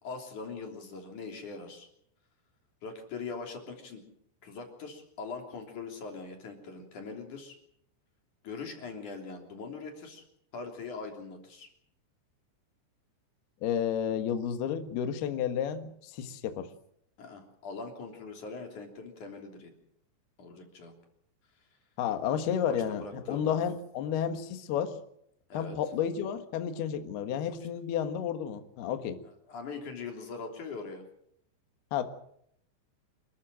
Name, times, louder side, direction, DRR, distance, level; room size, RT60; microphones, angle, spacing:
voice 1, 0.0-1.9 2.8-4.0 4.4-7.6 8.4-10.2 10.5-11.7 17.2-19.7 20.4-20.9 22.7-23.6 25.5-25.8 29.5-31.0, left 4 dB, 45° left, 3 dB, 4.3 m, -41 dB
voice 2, 13.6-16.7 22.0-24.9 25.5-29.2 31.9-32.0, left 8 dB, 65° left, 8 dB, 3.2 m, -31 dB
28.0 x 14.0 x 7.6 m, 0.72 s
omnidirectional pair, 5.6 m